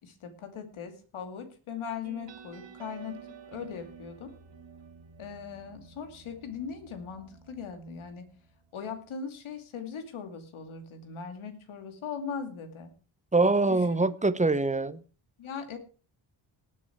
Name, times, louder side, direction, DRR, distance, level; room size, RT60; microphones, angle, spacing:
voice 1, 0.0-4.3 5.2-8.3 8.7-12.9 13.7-14.1 15.4-15.8, left 6 dB, 80° left, 8 dB, 2.6 m, -39 dB
sound 1, 2.0-9.2, right 7 dB, 65° right, 2.2 m, -51 dB
voice 2, 13.3-15.0, right 3 dB, 15° right, 15 dB, 0.8 m, -24 dB
18.5 x 8.5 x 4.6 m, 0.36 s
cardioid pair, 95°, 48 cm